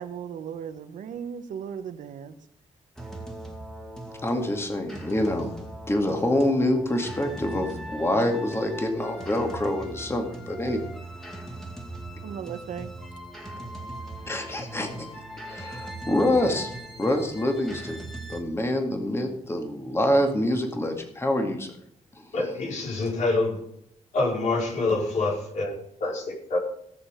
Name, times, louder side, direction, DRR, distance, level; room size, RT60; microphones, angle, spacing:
voice 1, 0.0-2.3 12.2-12.9, right 8 dB, 80° right, 9 dB, 1.2 m, -36 dB
sound 1, 3.0-18.4, right 1 dB, 5° left, 2.4 m, -39 dB
voice 2, 4.2-5.5 5.9-10.8 14.3-15.1 15.5-16.7 17.0-18.0 18.3-21.7 22.2-22.3, left 1 dB, 20° left, 4 dB, 2.2 m, -26 dB
voice 3, 22.3-23.6 24.1-26.6, left 2 dB, 65° left, -2 dB, 4.7 m, -26 dB
17.5 x 6.9 x 5.1 m, 0.73 s
cardioid pair, 105°, 13 cm